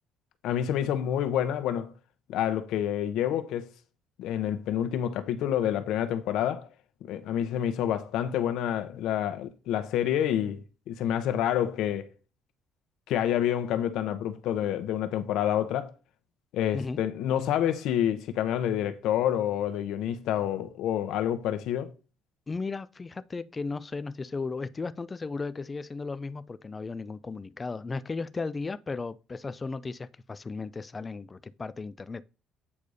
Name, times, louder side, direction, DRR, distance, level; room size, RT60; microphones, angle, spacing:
voice 1, 0.4-1.9 2.3-3.7 4.2-6.7 7.1-12.1 13.1-15.9 16.5-21.9, left 10 dB, 70° left, 1.0 m, -28 dB
voice 2, 22.5-32.2, left 4 dB, 15° left, 0.4 m, -35 dB
8.6 x 4.0 x 4.9 m
cardioid pair, 170°, 0 cm